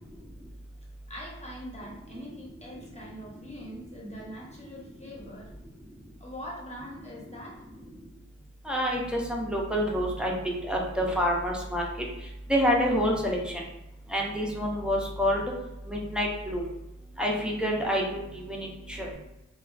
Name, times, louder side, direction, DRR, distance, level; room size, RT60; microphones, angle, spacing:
voice 1, 1.1-5.5 6.2-7.6, equal, 20° left, -4 dB, 0.8 m, -42 dB
voice 2, 8.7-10.3 10.7-11.8 12.5-13.4 14.1-15.4 15.9-16.6 17.2-18.2 18.5-19.1, equal, 5° right, -2 dB, 0.5 m, -27 dB
2.3 x 2.2 x 2.4 m, 0.93 s
wide cardioid pair, 85°, 30 cm